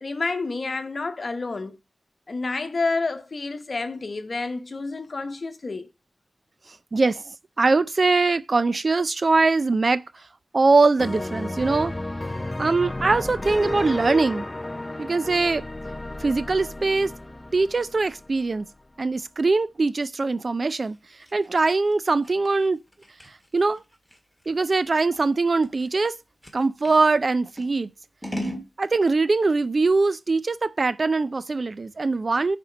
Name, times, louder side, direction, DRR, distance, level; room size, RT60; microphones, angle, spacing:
voice 1, 0.0-1.8 2.3-5.9, left 3 dB, 55° left, 1.0 m, -29 dB
voice 2, 6.9-10.0 10.5-11.9 12.6-14.5 15.0-15.7 16.2-17.1 17.5-18.7 19.0-21.0 21.3-22.8 23.5-23.8 24.5-26.2 26.5-27.9 28.8-32.6, right 3 dB, 50° right, 0.4 m, -22 dB
sound 1, 11.0-18.6, left 2 dB, 20° left, 0.4 m, -33 dB
Scissors, 20.8-27.0 27.5-28.7, equal, 5° right, 1.7 m, -38 dB
9.8 x 4.4 x 5.1 m
wide cardioid pair, 110°, 0 cm